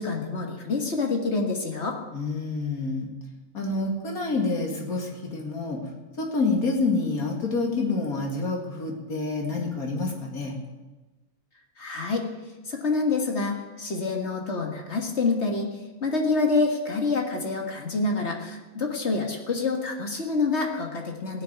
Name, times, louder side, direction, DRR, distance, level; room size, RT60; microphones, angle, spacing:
voice 1, 0.0-2.0 11.8-12.3 12.7-15.7 16.0-21.4, left 3 dB, 50° left, 2 dB, 1.9 m, -27 dB
voice 2, 2.1-3.1 3.5-5.8 6.2-10.5, left 3 dB, 80° left, 1 dB, 2.7 m, -27 dB
16.0 x 7.1 x 9.3 m, 1.2 s
omnidirectional pair, 1.5 m